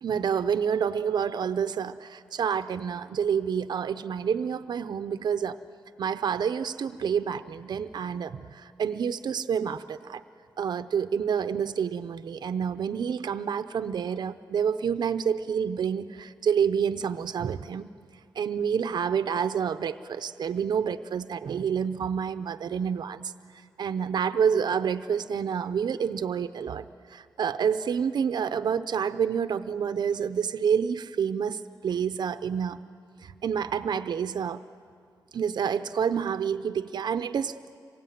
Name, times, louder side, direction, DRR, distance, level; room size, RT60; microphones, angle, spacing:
voice 1, 0.0-5.6 6.0-10.2 10.6-17.9 18.4-23.3 23.8-32.8 33.2-34.6 35.3-37.8, right 7 dB, 70° right, 10 dB, 0.7 m, -28 dB
26.5 x 22.5 x 9.3 m, 2.3 s
wide cardioid pair, 115°, 8 cm